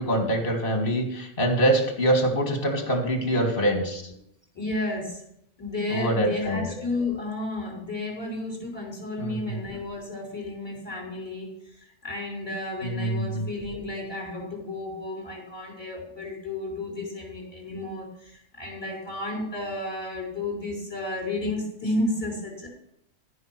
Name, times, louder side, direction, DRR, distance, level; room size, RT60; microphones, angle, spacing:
voice 1, 0.0-4.0 5.9-6.7 9.2-9.6 12.8-13.5, right 1 dB, 50° left, 4 dB, 2.0 m, -24 dB
voice 2, 4.5-5.2 5.6-22.7, left 2 dB, 20° left, -3 dB, 4.6 m, -32 dB
14.5 x 5.5 x 5.9 m, 0.76 s
omnidirectional pair, 1.2 m